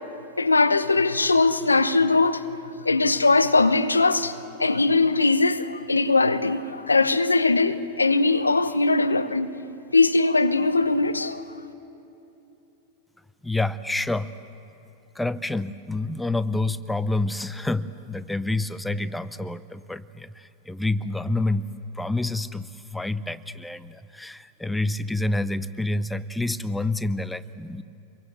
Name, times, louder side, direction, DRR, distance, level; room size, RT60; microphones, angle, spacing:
voice 1, 0.4-2.4 2.8-9.5 9.9-11.4, left 3 dB, 85° left, 1.0 m, -20 dB
voice 2, 13.4-14.3 15.1-21.7 21.9-27.8, left 2 dB, 5° left, 0.7 m, -28 dB
26.5 x 23.0 x 8.0 m
figure-of-eight pair, 95°, 0 cm